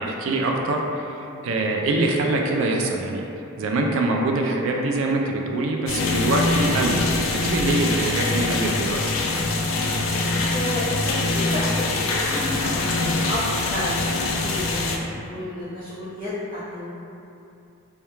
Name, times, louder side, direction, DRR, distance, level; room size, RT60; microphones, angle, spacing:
voice 1, 0.0-3.3 3.6-9.0, right 2 dB, 65° right, 1 dB, 0.3 m, -24 dB
sound 1, 5.9-15.0, left 3 dB, 70° left, 0.3 m, -24 dB
voice 2, 10.2-16.9, left 1 dB, 40° right, -13 dB, 0.7 m, -31 dB
2.2 x 2.2 x 2.9 m, 2.7 s
head